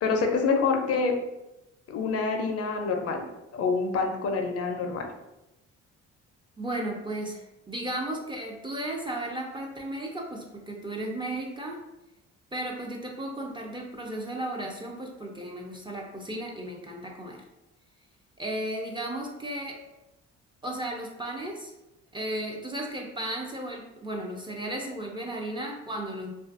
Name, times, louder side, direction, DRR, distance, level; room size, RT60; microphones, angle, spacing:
voice 1, 0.0-1.2 1.9-3.3 3.5-5.1, left 4 dB, 55° left, 3 dB, 0.5 m, -26 dB
voice 2, 6.6-11.8 12.5-17.4 18.4-19.8 20.6-21.7 22.1-26.3, right 1 dB, 15° right, 0 dB, 0.4 m, -34 dB
2.5 x 2.4 x 2.5 m, 0.95 s
cardioid pair, 90°, 30 cm